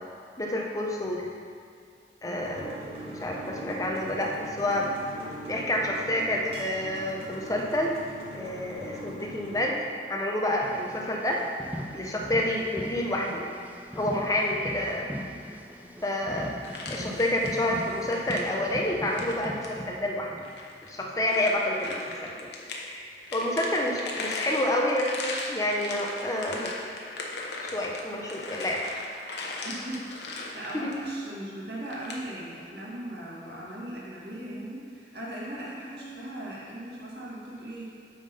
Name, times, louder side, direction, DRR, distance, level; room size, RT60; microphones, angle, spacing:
voice 1, 0.4-1.3 2.2-2.8 3.1-4.9 5.5-7.9 8.3-9.8 10.1-11.4 11.9-13.4 14.0-15.1 16.0-16.5 16.9-20.4 20.8-22.5 22.8-26.7 27.6-29.1 30.7-30.9, left 1 dB, 20° left, -1 dB, 0.8 m, -29 dB
sound 1, 2.4-9.7, equal, 35° right, 1.2 m, -41 dB
sound 2, 10.6-20.5 21.0-21.2, equal, 10° right, 0.4 m, -40 dB
sound 3, 16.6-17.7 18.0-18.4 19.1-19.7 20.4-22.8 23.2-31.0 31.9-32.1, left 3 dB, 70° left, 0.9 m, -38 dB
voice 2, 29.6-37.8, right 1 dB, 65° right, -6 dB, 1.8 m, -39 dB
8.6 x 3.8 x 5.3 m, 2.3 s
head